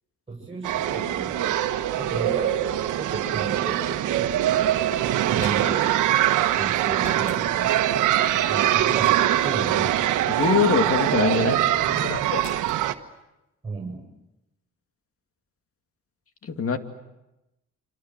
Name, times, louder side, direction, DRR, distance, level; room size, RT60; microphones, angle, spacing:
voice 1, 0.3-1.6 2.0-2.7 3.0-4.4 5.1-5.9 6.6-8.2 8.5-9.9 11.4-12.2 13.6-14.0, right 3 dB, 20° right, -2 dB, 7.7 m, -34 dB
sound 1, 0.6-12.9, right 12 dB, 85° right, 1.3 m, -23 dB
sound 2, 5.1-6.0 7.0-7.4 8.7-9.2 10.4-10.9 12.4-12.9, left 3 dB, 65° left, 7.4 m, -42 dB
voice 2, 10.3-11.6 12.0-12.4 16.4-16.8, left 6 dB, 50° left, 7 dB, 2.6 m, -23 dB
27.0 x 26.5 x 7.6 m, 0.96 s
cardioid pair, 90°, 30 cm